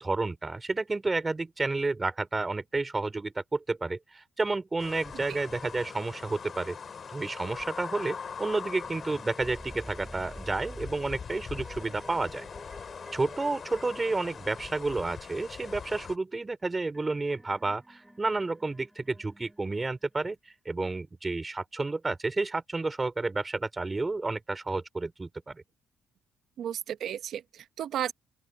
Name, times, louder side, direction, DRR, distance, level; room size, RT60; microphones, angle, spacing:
voice 1, 0.0-6.8 7.1-12.5 13.1-20.4 20.7-25.6, right 3 dB, 20° right, 4.1 m, -31 dB
sound 1, 4.8-16.2, left 6 dB, 45° left, 2.8 m, -42 dB
sound 2, 8.8-15.2 16.6-20.3, right 1 dB, 5° right, 5.6 m, -50 dB
voice 2, 26.6-28.1, right 10 dB, 75° right, 1.1 m, -34 dB
open air
cardioid pair, 90°, 0 cm